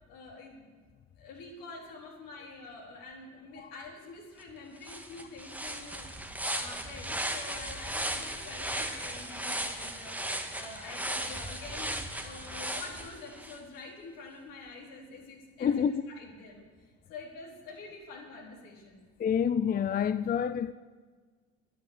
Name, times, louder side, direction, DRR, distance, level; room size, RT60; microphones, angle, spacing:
voice 1, 0.1-0.7 1.2-6.1 6.5-12.0 12.2-16.6 17.1-19.0, left 3 dB, 70° left, 4.3 m, -47 dB
sound 1, 4.4-4.5 4.8-13.6, right 1 dB, 5° right, 1.8 m, -36 dB
voice 2, 15.6-16.0 19.2-20.7, left 8 dB, 25° left, 0.5 m, -28 dB
10.5 x 10.5 x 9.6 m
hypercardioid pair, 70°, 35 cm